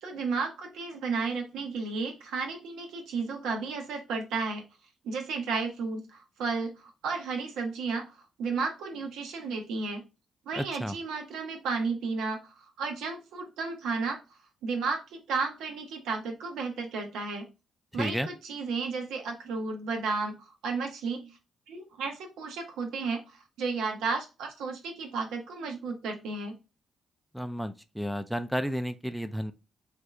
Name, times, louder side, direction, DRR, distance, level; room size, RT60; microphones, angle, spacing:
voice 1, 0.0-4.6 5.0-10.0 10.5-14.2 14.6-17.4 17.9-20.3 20.6-21.4 21.7-26.6, right 4 dB, 70° right, 0.7 m, -33 dB
voice 2, 10.6-10.9 17.9-18.3 27.3-29.5, equal, ahead, 0.4 m, -32 dB
3.6 x 2.5 x 3.1 m
hypercardioid pair, 40°, 0 cm